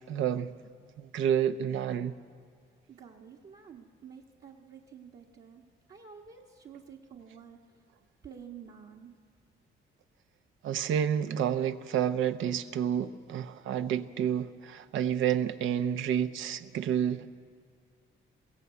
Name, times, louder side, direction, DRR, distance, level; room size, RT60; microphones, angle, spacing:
voice 1, 0.1-0.5 1.0-2.1 10.6-17.4, right 9 dB, 80° right, 0.8 m, -29 dB
voice 2, 2.9-7.8 8.2-9.1, right 7 dB, 55° right, 1.4 m, -50 dB
22.0 x 16.5 x 8.4 m
cardioid pair, 90°, 20 cm